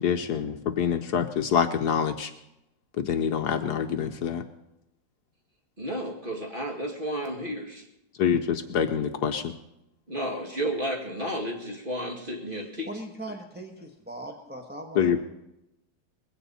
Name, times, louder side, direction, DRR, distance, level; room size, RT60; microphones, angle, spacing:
voice 1, 0.0-2.3 3.0-4.4 8.2-9.5 15.0-15.2, left 7 dB, 65° left, 7 dB, 1.2 m, -26 dB
voice 2, 5.8-7.8 10.1-12.9, right 1 dB, 30° right, 1 dB, 2.3 m, -32 dB
voice 3, 12.9-15.3, right 1 dB, 5° right, 0 dB, 1.0 m, -39 dB
20.5 x 16.5 x 4.2 m, 0.89 s
omnidirectional pair, 2.0 m